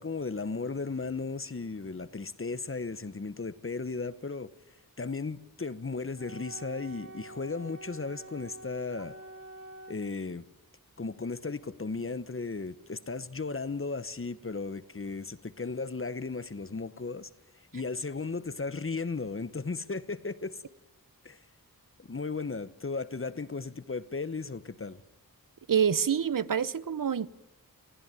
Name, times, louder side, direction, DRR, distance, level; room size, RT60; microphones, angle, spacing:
voice 1, 0.0-4.5 5.0-9.1 9.9-10.5 11.0-17.3 17.7-20.6 21.2-21.4 22.0-25.0, left 4 dB, 35° left, 1.0 m, -35 dB
Wind instrument woodwind instrument, 6.1-10.0, right 2 dB, 45° right, 5.4 m, -47 dB
voice 2, 25.7-27.3, right 8 dB, 65° right, 0.8 m, -26 dB
22.5 x 15.5 x 9.0 m
wide cardioid pair, 50°, 35 cm